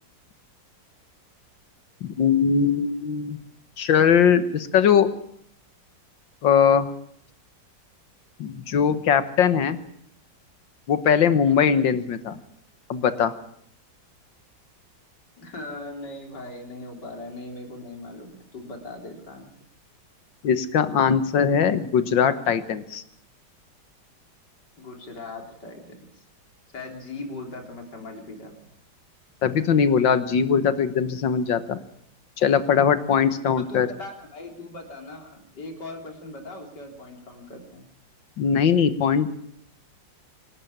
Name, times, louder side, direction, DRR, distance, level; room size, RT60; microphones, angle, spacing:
voice 1, 2.0-3.4 3.8-5.1 6.4-6.9 8.4-9.8 10.9-12.4 12.9-13.3 20.4-23.0 29.4-31.8 32.4-33.9 38.4-39.3, left 7 dB, 85° left, 12 dB, 2.0 m, -20 dB
voice 2, 11.5-11.8 15.4-19.5 24.8-26.2 26.7-28.5 33.6-37.9, left 2 dB, 65° left, 3 dB, 4.2 m, -39 dB
25.0 x 12.5 x 8.7 m, 0.68 s
omnidirectional pair, 2.0 m